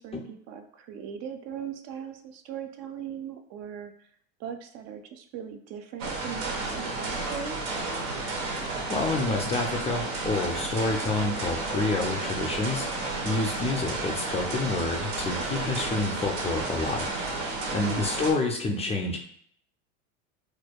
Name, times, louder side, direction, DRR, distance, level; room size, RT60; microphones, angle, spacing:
voice 1, 0.0-3.9 4.4-7.6 17.9-18.1, right 8 dB, 45° right, 6 dB, 0.4 m, -39 dB
Power Loom - China, 6.0-18.3, right 3 dB, 75° right, 0.9 m, -32 dB
voice 2, 8.9-12.9 13.2-17.1 17.7-19.3, left 3 dB, 20° left, 1 dB, 0.4 m, -28 dB
4.4 x 2.2 x 2.2 m, 0.64 s
hypercardioid pair, 100°, 36 cm